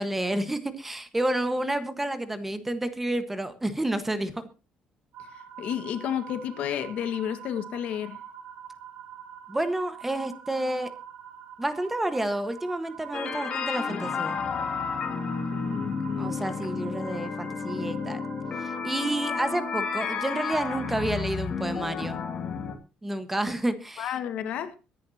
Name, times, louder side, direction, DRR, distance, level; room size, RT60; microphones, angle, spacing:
voice 1, 0.0-4.3 9.5-10.9 11.6-14.4 16.1-18.2 18.6-22.2 23.0-24.1, right 1 dB, 10° right, 1.4 m, -30 dB
sound 1, 5.1-21.2, right 9 dB, 60° right, 2.3 m, -45 dB
voice 2, 5.3-8.2 15.5-16.4 24.0-24.8, left 9 dB, 65° left, 1.7 m, -32 dB
sound 2, 13.1-22.7, left 5 dB, 40° left, 2.6 m, -31 dB
23.5 x 10.5 x 2.9 m
cardioid pair, 150°, 2 cm